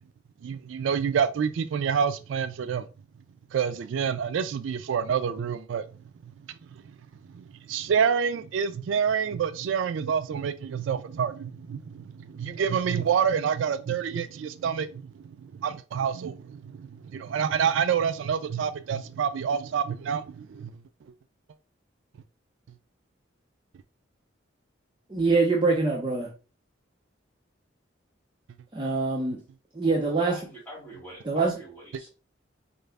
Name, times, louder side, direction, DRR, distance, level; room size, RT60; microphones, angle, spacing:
voice 1, 0.4-2.8 3.5-5.8 7.3-15.1 15.4-20.7, right 7 dB, 75° right, 0.3 m, -27 dB
voice 2, 25.1-26.3 28.7-29.4 29.7-30.4 31.2-31.5, right 3 dB, 25° right, 0.6 m, -24 dB
voice 3, 30.3-32.1, right 1 dB, 10° left, 2.3 m, -45 dB
4.6 x 2.5 x 3.3 m
head